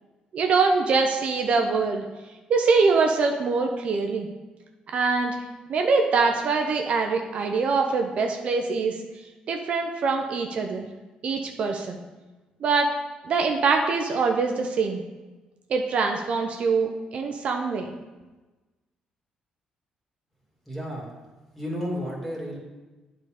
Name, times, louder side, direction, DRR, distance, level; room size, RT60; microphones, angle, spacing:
voice 1, 0.3-2.0 2.5-4.3 4.9-5.4 5.7-9.0 9.5-10.9 11.2-12.0 12.6-12.9 13.3-15.0 15.7-17.9, right 4 dB, 55° right, 3 dB, 0.7 m, -23 dB
voice 2, 20.7-21.2 21.5-22.6, equal, 5° left, -3 dB, 2.1 m, -32 dB
9.1 x 3.9 x 4.9 m, 1.2 s
cardioid pair, 110°, 2 cm